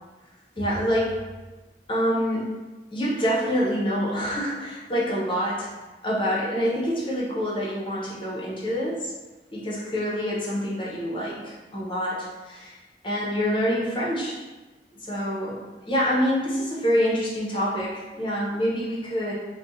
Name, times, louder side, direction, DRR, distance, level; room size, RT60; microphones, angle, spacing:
voice 1, 0.6-1.2 1.9-2.5 2.9-5.7 6.0-9.1 9.5-12.8 13.0-14.4 15.0-15.6 15.9-19.3, equal, 30° left, -6 dB, 0.7 m, -26 dB
2.5 x 2.2 x 3.9 m, 1.2 s
head